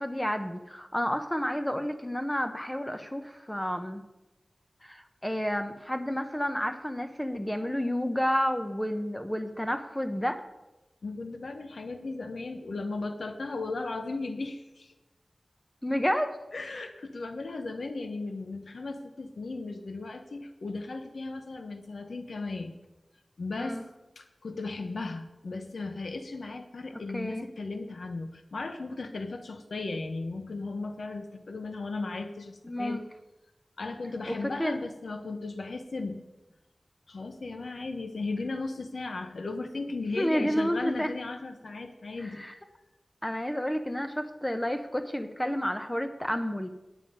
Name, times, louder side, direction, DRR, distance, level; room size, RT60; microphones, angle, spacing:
voice 1, 0.0-4.0 4.8-10.4 15.8-16.4 23.6-23.8 27.1-27.5 32.6-33.0 34.3-34.8 40.2-41.1 42.2-42.5 43.2-46.7, equal, 10° left, 7 dB, 0.7 m, -30 dB
voice 2, 11.0-14.9 16.5-22.7 23.4-23.8 24.2-33.0 33.8-36.2 37.1-42.4, left 3 dB, 85° left, 7 dB, 0.8 m, -36 dB
9.3 x 9.2 x 5.3 m, 1.0 s
wide cardioid pair, 80°, 0 cm